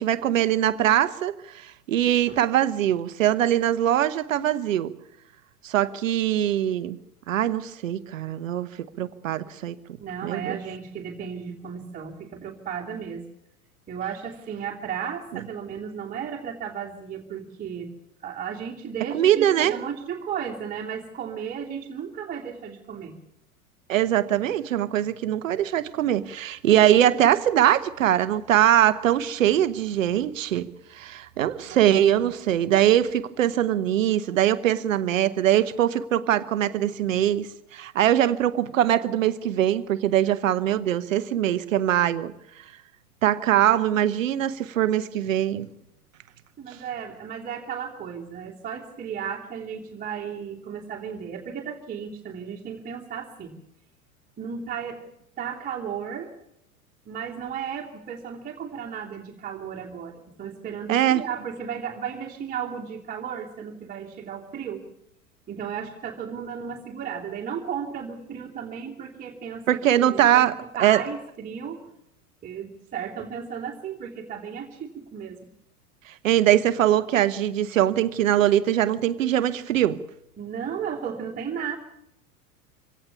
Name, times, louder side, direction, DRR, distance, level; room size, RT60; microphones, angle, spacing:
voice 1, 0.0-4.9 5.6-7.0 7.3-9.7 10.2-10.6 19.1-19.7 23.9-42.3 43.2-45.7 60.9-61.2 69.7-70.5 70.8-71.0 76.1-80.0, right 11 dB, 60° right, 1.1 m, -22 dB
voice 2, 10.0-13.2 13.9-17.9 18.2-23.1 31.6-31.9 46.6-53.6 54.4-55.0 55.4-56.3 57.0-64.8 65.5-70.5 70.7-71.8 72.4-75.4 80.4-81.8, right 7 dB, 20° right, 2.9 m, -34 dB
25.0 x 17.5 x 7.1 m
figure-of-eight pair, 85°, 44 cm